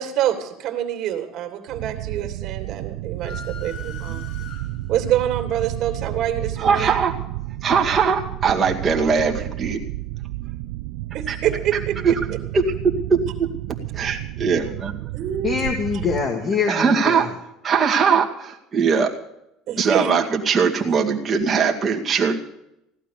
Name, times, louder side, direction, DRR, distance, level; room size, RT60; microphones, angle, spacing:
voice 1, 0.0-4.3 4.9-7.0 11.1-12.4 15.1-15.7 19.7-20.2, right 10 dB, 50° right, 5 dB, 2.8 m, -26 dB
sound 1, 1.7-16.3, right 17 dB, 85° right, 0.5 m, -31 dB
sound 2, 3.2-5.1, left 6 dB, 50° left, 1.7 m, -40 dB
voice 2, 6.6-7.1 7.6-9.8 11.3-11.4 12.0-12.1 12.5-12.6 13.1-13.5 13.9-15.1 16.7-17.3 17.6-19.1 19.8-22.4, right 6 dB, 25° right, 0 dB, 2.1 m, -20 dB
voice 3, 15.4-17.3, left 5 dB, 35° left, 3 dB, 2.0 m, -24 dB
16.5 x 12.0 x 6.9 m, 0.82 s
cardioid pair, 135°, 0 cm